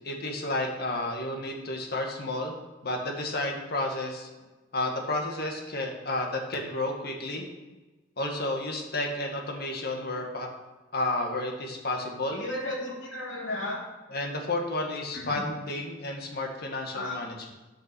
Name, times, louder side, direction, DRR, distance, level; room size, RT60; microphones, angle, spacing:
voice 1, 0.0-2.6 2.8-4.3 4.7-7.4 8.2-10.5 10.9-12.4 14.1-17.5, left 2 dB, 55° left, 1 dB, 1.8 m, -31 dB
voice 2, 12.3-13.8 15.1-15.4 16.9-17.2, left 1 dB, 75° left, -2 dB, 2.8 m, -34 dB
9.7 x 5.8 x 7.0 m, 1.2 s
head